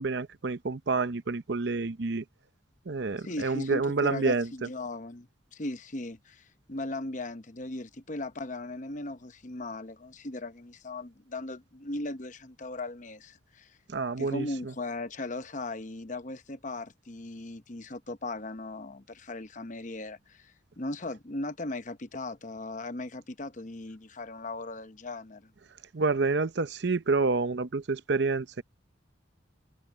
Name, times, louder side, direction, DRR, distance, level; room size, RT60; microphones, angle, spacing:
voice 1, 0.0-2.2 2.9-4.7 13.9-14.7 25.9-28.6, right 3 dB, 60° right, 0.7 m, -28 dB
voice 2, 3.2-13.8 14.2-25.5, left 2 dB, 40° left, 0.9 m, -38 dB
head